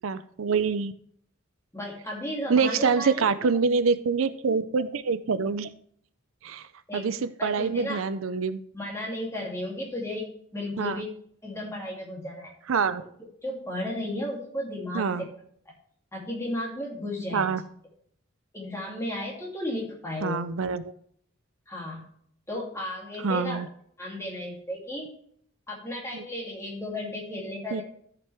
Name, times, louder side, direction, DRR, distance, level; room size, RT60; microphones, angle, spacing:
voice 1, 0.0-0.9 2.5-5.7 6.4-6.7 6.9-8.6 10.8-11.0 12.7-13.0 14.9-15.2 17.3-17.6 20.2-20.8 23.2-23.7 26.1-26.2 27.7-27.8, right 5 dB, 80° right, 14 dB, 0.5 m, -25 dB
voice 2, 1.7-3.2 6.9-7.1 7.4-8.1 8.7-11.1 11.4-12.5 13.4-15.3 16.1-17.5 18.5-20.5 21.7-22.1 22.5-23.6 24.0-25.1 25.7-27.8, left 1 dB, 15° left, -3 dB, 2.7 m, -34 dB
13.5 x 6.0 x 3.4 m, 0.64 s
head